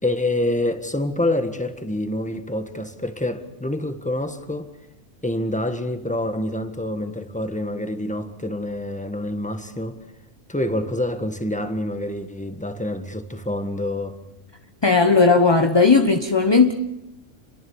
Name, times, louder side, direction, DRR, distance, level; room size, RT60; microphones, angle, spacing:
voice 1, 0.0-4.7 5.2-10.0 10.5-14.2, left 1 dB, 5° left, 1.6 m, -27 dB
voice 2, 14.8-16.7, left 4 dB, 20° left, 1.1 m, -16 dB
29.5 x 22.5 x 7.3 m
omnidirectional pair, 1.4 m